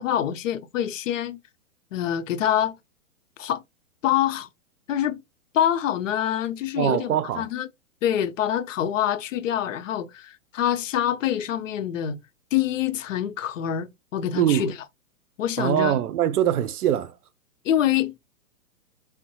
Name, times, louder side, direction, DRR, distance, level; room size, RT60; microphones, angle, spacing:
voice 1, 0.0-1.4 1.9-2.8 3.4-3.6 4.0-4.5 4.9-5.2 5.5-7.7 8.0-12.2 12.5-14.7 15.4-16.0 17.6-18.3, left 10 dB, 60° left, 0.5 m, -25 dB
voice 2, 6.8-7.5 14.3-14.7 15.6-17.1, right 11 dB, 85° right, 0.6 m, -23 dB
3.5 x 2.1 x 2.7 m
hypercardioid pair, 150°, 44 cm